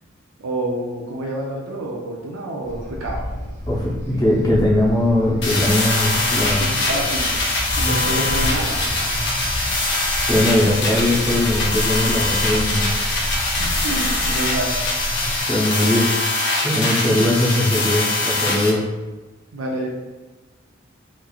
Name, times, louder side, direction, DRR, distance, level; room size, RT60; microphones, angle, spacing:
voice 1, 0.4-3.3 6.9-7.4 7.7-8.9 13.5-14.7 19.5-19.9, right 1 dB, 85° right, -2 dB, 0.5 m, -27 dB
sound 1, 2.6-15.4, equal, 40° right, 0.9 m, -29 dB
voice 2, 3.7-6.8 7.8-8.0 9.8-10.0 10.3-13.0 15.5-16.1 16.6-18.8, left 1 dB, 20° left, -4 dB, 0.6 m, -20 dB
sound 2, 5.4-18.7, left 2 dB, 60° left, 0.7 m, -23 dB
3.0 x 2.4 x 2.3 m, 1.2 s
head